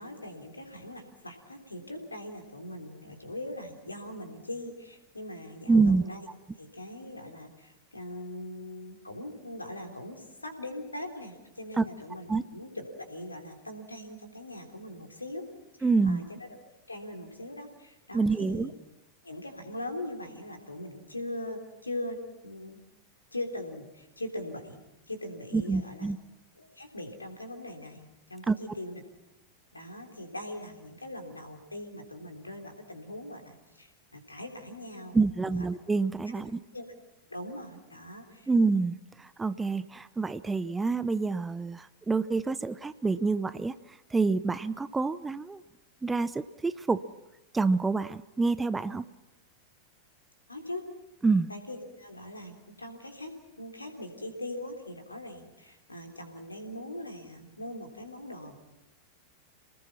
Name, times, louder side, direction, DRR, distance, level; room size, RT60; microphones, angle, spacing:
voice 1, 0.0-6.3 6.5-15.4 16.0-16.5 16.9-18.7 19.2-22.8 23.3-24.8 25.1-26.1 26.6-29.0 29.7-35.2 35.6-35.7 36.3-36.4 36.7-36.9 37.3-38.5 50.5-50.9 51.5-58.6, left 1 dB, 80° left, 4 dB, 3.4 m, -41 dB
voice 2, 5.7-6.0 11.8-11.9 12.3-12.4 15.8-16.2 18.1-18.7 25.5-26.2 28.5-28.6 35.1-36.6 38.5-43.7 44.1-45.6 46.0-47.0 47.5-49.0 51.2-51.5, right 4 dB, 10° right, 15 dB, 0.7 m, -27 dB
28.5 x 20.0 x 5.9 m, 0.96 s
figure-of-eight pair, 90°, 0 cm